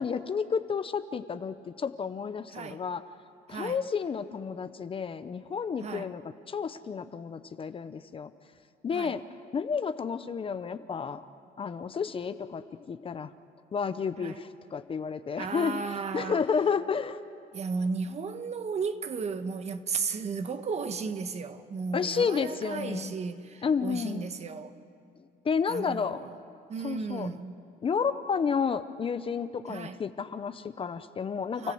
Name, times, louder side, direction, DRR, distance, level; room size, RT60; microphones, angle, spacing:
voice 1, 0.0-3.0 3.5-8.3 8.8-11.2 11.6-13.3 13.7-15.8 16.1-17.2 21.9-23.1 23.6-24.3 25.4-26.2 26.8-27.3 27.8-31.7, left 6 dB, 30° left, 0.7 m, -31 dB
voice 2, 3.5-3.8 5.8-6.1 8.9-9.1 14.2-14.4 15.4-16.4 17.5-24.7 25.7-26.4 26.7-27.6 29.7-30.0 31.6-31.7, right 5 dB, 40° right, 1.2 m, -34 dB
29.5 x 15.5 x 7.9 m
cardioid pair, 110°, 17 cm